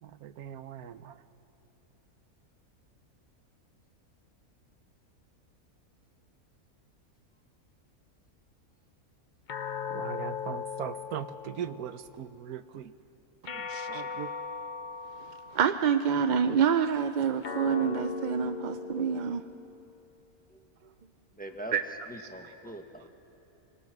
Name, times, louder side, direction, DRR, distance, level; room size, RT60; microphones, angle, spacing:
voice 1, 0.0-1.2 9.9-12.9 13.5-14.3, right 9 dB, 85° right, 12 dB, 1.3 m, -40 dB
sound 1, 9.5-12.1 13.5-16.0 17.4-20.0, left 5 dB, 40° left, 0.7 m, -38 dB
voice 2, 15.5-19.4 21.7-21.8, right 7 dB, 55° right, 9 dB, 0.5 m, -27 dB
voice 3, 21.3-23.1, right 1 dB, 5° left, 4 dB, 1.3 m, -43 dB
27.0 x 20.0 x 6.0 m, 3.0 s
omnidirectional pair, 1.5 m